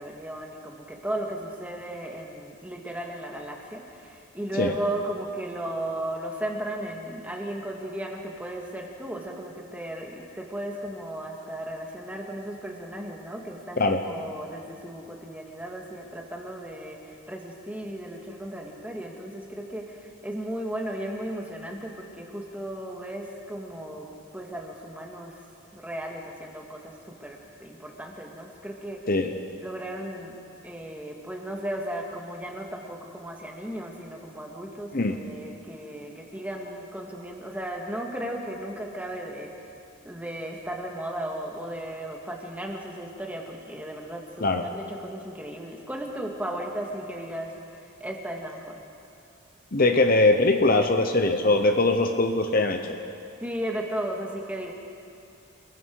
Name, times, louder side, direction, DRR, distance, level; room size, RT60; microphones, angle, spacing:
voice 1, 0.0-25.3 25.7-29.0 29.6-30.4 30.6-39.5 40.1-47.5 48.0-48.8 53.4-54.7, right 1 dB, 5° right, 0 dB, 2.0 m, -35 dB
voice 2, 49.7-53.0, left 2 dB, 40° left, 5 dB, 1.0 m, -21 dB
28.5 x 21.5 x 4.8 m, 2.6 s
head